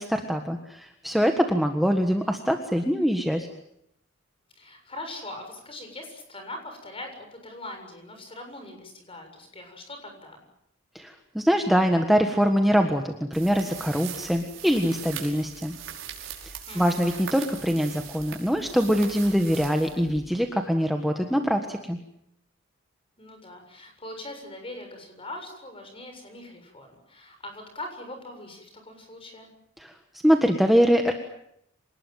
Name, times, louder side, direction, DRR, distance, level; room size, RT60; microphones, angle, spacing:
voice 1, 0.0-3.5 10.9-15.7 16.7-22.0 29.8-29.9 30.2-31.1, equal, ahead, 4 dB, 1.5 m, -23 dB
voice 2, 4.5-10.4 16.6-17.1 23.2-29.5, left 1 dB, 25° left, 5 dB, 7.3 m, -41 dB
sound 1, 13.3-20.5, right 8 dB, 75° right, 5.3 m, -41 dB
27.0 x 19.5 x 9.2 m, 0.79 s
head